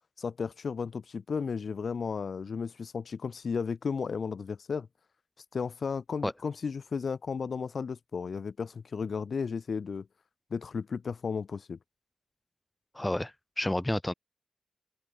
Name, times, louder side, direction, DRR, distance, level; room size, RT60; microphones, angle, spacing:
voice 1, 0.2-4.9 5.5-10.1 10.5-11.8, left 5 dB, 65° left, 4.6 m, -34 dB
voice 2, 12.9-14.1, left 1 dB, 15° left, 7.4 m, -30 dB
open air
cardioid pair, 50°, 0 cm